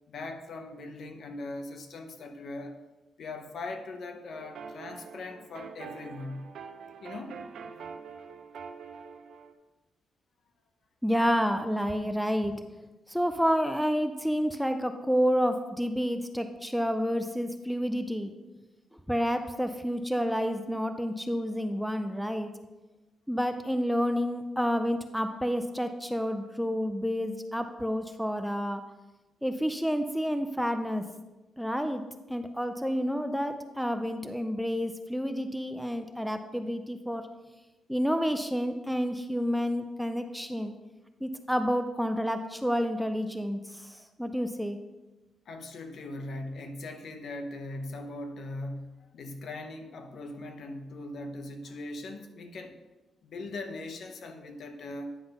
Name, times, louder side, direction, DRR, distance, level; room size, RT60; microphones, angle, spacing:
voice 1, 0.1-2.8 3.2-6.5 7.0-7.4 45.5-52.8 53.2-55.2, left 2 dB, 55° left, 6 dB, 0.8 m, -40 dB
sound 1, 4.3-9.5, right 6 dB, 65° right, 0.7 m, -45 dB
voice 2, 11.0-12.6 13.1-18.3 19.1-22.5 23.3-28.8 29.4-31.1 31.6-32.0 32.3-37.2 37.9-40.7 41.2-44.8, equal, ahead, 7 dB, 0.4 m, -29 dB
9.8 x 3.9 x 5.3 m, 1.1 s
cardioid pair, 135°, 0 cm